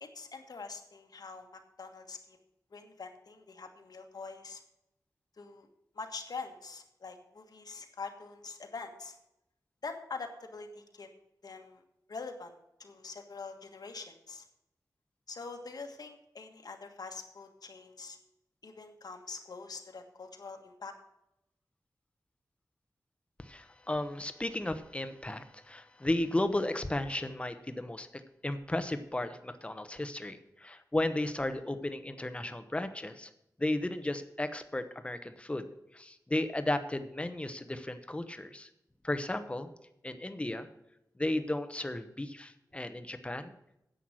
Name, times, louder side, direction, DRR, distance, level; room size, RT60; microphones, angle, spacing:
voice 1, 0.0-2.4 2.7-4.6 5.4-5.7 5.9-9.2 9.8-11.1 11.4-11.8 12.1-14.4 15.3-18.2 18.6-20.9, left 4 dB, 70° left, 5 dB, 1.5 m, -44 dB
voice 2, 23.4-33.3 33.6-35.7 35.9-38.7 39.0-39.7 40.0-40.7 41.2-43.5, left 1 dB, 15° left, 10 dB, 0.9 m, -34 dB
10.0 x 8.0 x 6.2 m, 0.85 s
wide cardioid pair, 105°, 7 cm